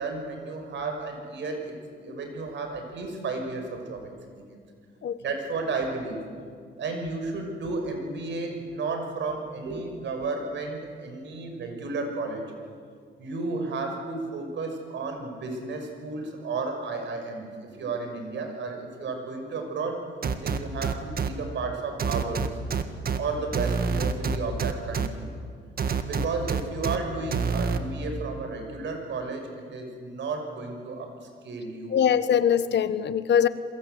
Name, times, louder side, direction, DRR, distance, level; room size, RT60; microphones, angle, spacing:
voice 1, 0.0-1.7 2.0-4.6 5.2-6.2 6.8-12.4 13.2-20.0 20.4-22.6 23.2-25.3 26.0-31.1 31.4-32.0, right 3 dB, 65° right, 4 dB, 6.1 m, -33 dB
sound 1, 20.2-21.3 22.0-23.2 23.5-25.1 25.8-27.0 27.3-27.8, right 5 dB, 50° right, 1.9 m, -26 dB
voice 2, 31.9-33.5, left 8 dB, 60° left, 13 dB, 1.3 m, -22 dB
28.0 x 23.0 x 8.1 m, 2.1 s
cardioid pair, 90°, 20 cm